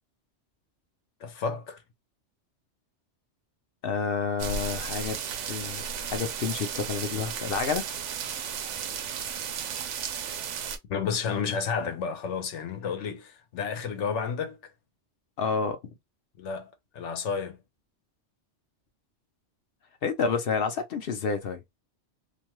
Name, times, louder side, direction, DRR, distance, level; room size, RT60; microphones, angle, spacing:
voice 1, 1.2-1.8 10.9-14.6 16.4-17.6, left 6 dB, 80° left, 1.1 m, -31 dB
voice 2, 3.8-5.2 5.5-5.8 6.1-7.9 15.4-15.8 20.0-21.6, left 5 dB, 60° left, 0.8 m, -29 dB
sound 1, 4.4-10.8, right 7 dB, 85° right, 0.9 m, -34 dB
2.6 x 2.2 x 2.9 m
omnidirectional pair, 1.2 m